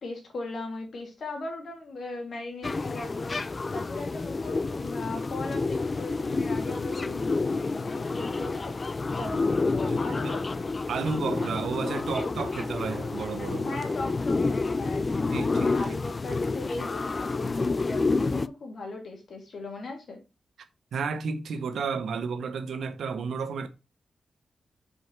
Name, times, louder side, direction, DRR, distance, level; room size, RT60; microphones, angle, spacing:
voice 1, 0.0-3.4 3.7-8.7 9.1-10.7 13.6-20.2, left 2 dB, 70° left, 2.5 m, -38 dB
sound 1, 2.6-18.5, left 3 dB, 40° left, 0.4 m, -29 dB
voice 2, 9.9-10.4 10.9-13.7 15.3-15.8 20.9-23.7, right 5 dB, 85° right, 0.8 m, -32 dB
5.3 x 4.7 x 4.5 m
cardioid pair, 60°, 0 cm